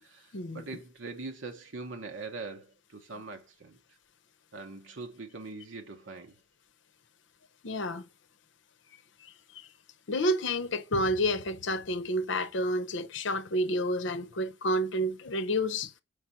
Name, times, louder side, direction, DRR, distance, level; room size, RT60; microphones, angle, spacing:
voice 1, 0.0-3.8 4.5-6.4, right 3 dB, 80° right, 0.9 m, -42 dB
voice 2, 7.6-8.0 9.2-9.7 10.1-15.9, equal, 75° left, 0.7 m, -30 dB
6.2 x 5.1 x 4.1 m
head